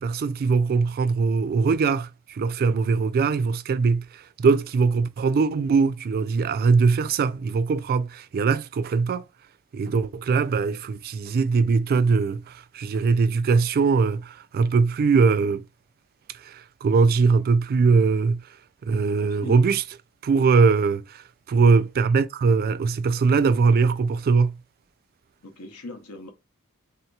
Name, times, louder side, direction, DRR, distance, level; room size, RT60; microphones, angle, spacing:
voice 1, 0.0-9.2 9.7-15.6 16.3-18.4 18.8-19.8 20.2-24.5, right 4 dB, 45° right, 0.3 m, -21 dB
voice 2, 19.2-19.6 25.4-26.3, left 1 dB, 85° left, 0.8 m, -40 dB
3.5 x 2.8 x 2.2 m
head